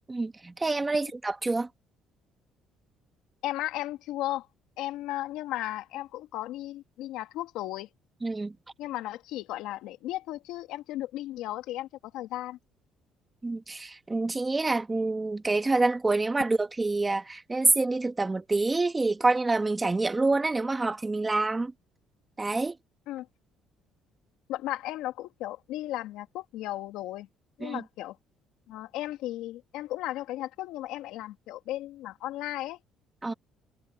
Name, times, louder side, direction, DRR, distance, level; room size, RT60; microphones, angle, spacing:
voice 1, 0.1-1.7 8.2-8.6 13.4-21.7 22.4-22.8 27.6-27.8 33.2-33.3, right 3 dB, 15° right, 1.9 m, -27 dB
voice 2, 3.4-4.5 4.8-7.9 8.8-12.6 23.1-23.3 24.5-27.3 27.6-28.2 28.7-32.8, left 15 dB, 80° left, 2.5 m, -35 dB
cardioid pair, 105°, 0 cm